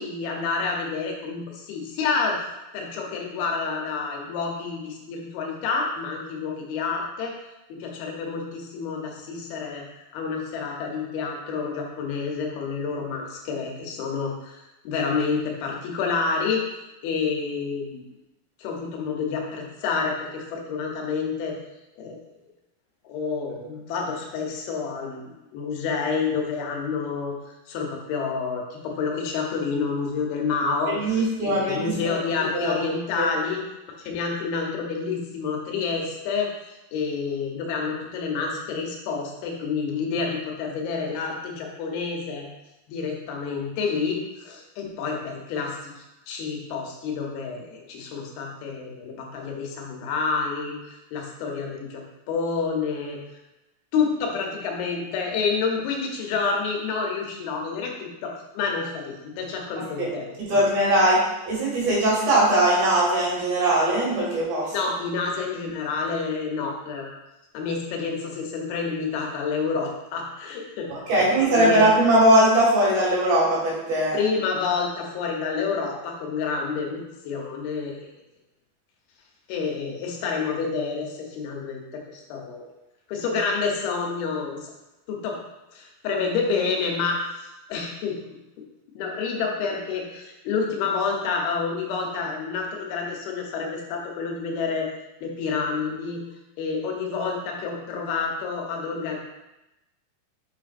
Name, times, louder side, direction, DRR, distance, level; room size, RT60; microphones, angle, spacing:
voice 1, 0.0-2.5 2.7-7.3 7.7-16.6 17.0-18.0 18.6-21.6 22.0-22.2 23.0-25.2 25.5-27.4 27.7-33.6 34.0-42.5 42.9-53.2 53.9-60.6 64.7-67.1 67.5-71.0 71.3-71.8 74.1-78.1 79.5-82.7 83.1-84.7 85.1-85.4 85.7-88.2 89.0-94.9 95.2-96.2 96.6-99.2, left 5 dB, 85° left, 0 dB, 2.8 m, -29 dB
voice 2, 30.9-32.2 32.5-32.8 33.2-33.3 60.0-60.1 60.5-61.2 61.5-64.7 70.9-74.2, right 1 dB, 75° right, -5 dB, 3.7 m, -20 dB
6.8 x 5.8 x 2.5 m, 0.96 s
omnidirectional pair, 4.4 m